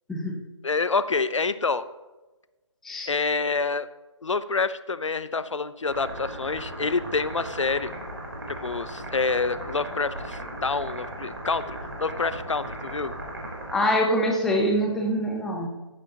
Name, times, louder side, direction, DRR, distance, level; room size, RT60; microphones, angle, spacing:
voice 1, 0.6-1.9 3.1-3.9 4.2-7.9 8.6-13.1, left 4 dB, 75° left, 14 dB, 0.7 m, -27 dB
sound 1, 5.9-13.8, right 1 dB, 50° right, 3.6 m, -37 dB
voice 2, 13.7-15.7, equal, ahead, 0 dB, 0.6 m, -24 dB
14.0 x 9.7 x 2.9 m, 1.1 s
figure-of-eight pair, 155°, 16 cm